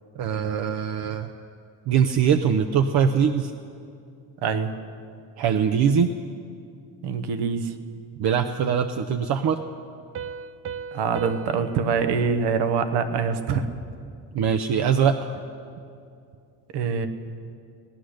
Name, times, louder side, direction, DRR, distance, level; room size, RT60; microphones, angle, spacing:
voice 1, 0.2-1.3 1.9-3.5 5.4-6.1 8.2-9.6 14.3-15.2, right 7 dB, 70° right, 6 dB, 0.8 m, -22 dB
voice 2, 4.4-4.8 7.0-7.7 10.9-13.7 16.7-17.1, right 6 dB, 85° right, 8 dB, 1.2 m, -24 dB
Piano, 10.2-13.6, right 6 dB, 35° right, 0.4 m, -39 dB
18.0 x 10.0 x 6.4 m, 2.4 s
cardioid pair, 95°, 40 cm